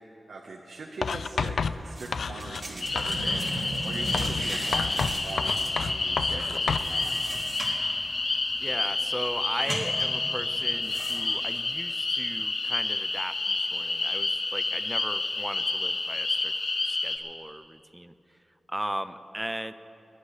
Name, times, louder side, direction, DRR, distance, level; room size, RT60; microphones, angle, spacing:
voice 1, 0.3-7.3, right 3 dB, 85° right, -2 dB, 1.2 m, -41 dB
Writing, 1.0-2.7 3.0-3.5 4.1-6.9, left 5 dB, 90° left, 0.4 m, -31 dB
sound 1, 1.9-11.6, right 1 dB, 35° right, 2.8 m, -38 dB
sound 2, 2.8-17.2, left 3 dB, 65° left, 1.3 m, -29 dB
voice 2, 8.6-16.5 16.8-18.1 18.7-19.7, right 1 dB, 10° right, 11 dB, 0.6 m, -37 dB
29.5 x 11.5 x 3.3 m, 3.0 s
wide cardioid pair, 85°, 0 cm